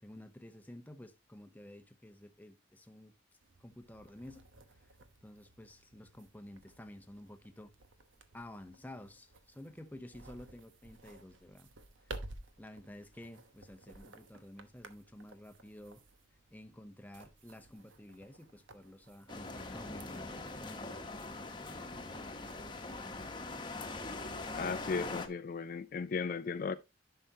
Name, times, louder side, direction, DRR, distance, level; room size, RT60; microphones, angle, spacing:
voice 1, 0.0-3.1 3.6-4.5 5.2-7.7 8.3-11.7 12.6-16.0 16.5-21.1, left 1 dB, 10° left, 0.7 m, -51 dB
sound 1, 3.4-22.5, right 2 dB, 85° right, 1.0 m, -55 dB
sound 2, 19.3-25.3, left 2 dB, 25° left, 1.0 m, -42 dB
voice 2, 24.5-26.7, left 5 dB, 45° left, 0.4 m, -36 dB
11.0 x 5.7 x 2.8 m
head